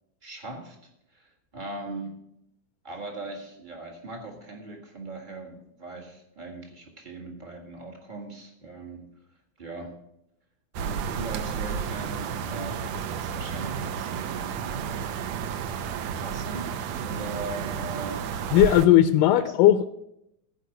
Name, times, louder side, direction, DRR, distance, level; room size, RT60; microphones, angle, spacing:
voice 1, 0.2-0.8 1.1-2.2 2.8-9.9 10.8-15.1 16.1-16.7 17.0-18.7 19.4-19.5, right 3 dB, 65° right, 0.4 m, -40 dB
sound 1, 10.7-18.9, right 7 dB, 85° right, 1.6 m, -32 dB
voice 2, 18.5-19.9, left 12 dB, 80° left, 2.0 m, -17 dB
15.0 x 5.4 x 7.9 m
omnidirectional pair, 4.0 m